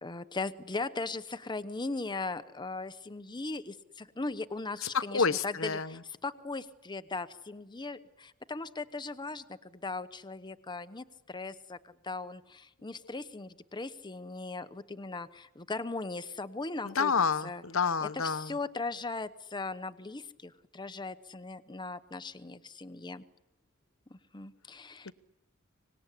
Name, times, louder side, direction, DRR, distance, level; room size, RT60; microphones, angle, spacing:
voice 1, 0.0-17.1 17.4-17.6 18.0-23.2 24.1-25.1, left 3 dB, 20° left, 11 dB, 0.9 m, -38 dB
voice 2, 4.9-5.9 16.8-18.5 25.1-25.2, left 5 dB, 70° left, 15 dB, 1.0 m, -29 dB
25.0 x 19.5 x 10.0 m, 0.89 s
head